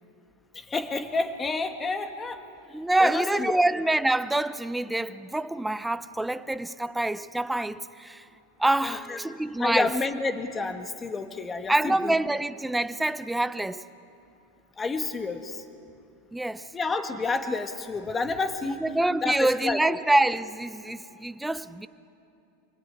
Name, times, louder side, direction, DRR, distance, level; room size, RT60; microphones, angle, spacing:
voice 1, 0.5-2.4 3.0-3.6 8.8-9.2 9.6-12.1 14.8-15.6 16.7-18.8 19.2-20.0, left 3 dB, 15° left, 1.7 m, -29 dB
voice 2, 2.7-8.2 8.6-9.9 11.7-13.8 16.3-16.7 18.8-21.9, right 1 dB, 5° right, 0.6 m, -26 dB
27.5 x 21.0 x 9.6 m
supercardioid pair, 145°, 0 cm